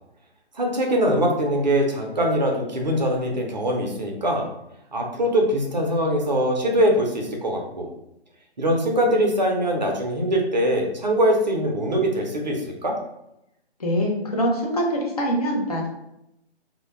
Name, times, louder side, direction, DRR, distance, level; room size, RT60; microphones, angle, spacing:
voice 1, 0.5-4.5 4.9-7.9 8.6-12.9, equal, 45° right, 1 dB, 0.5 m, -22 dB
voice 2, 13.8-15.9, equal, 35° left, -2 dB, 0.5 m, -24 dB
2.1 x 2.1 x 3.1 m, 0.84 s
figure-of-eight pair, 145°, 32 cm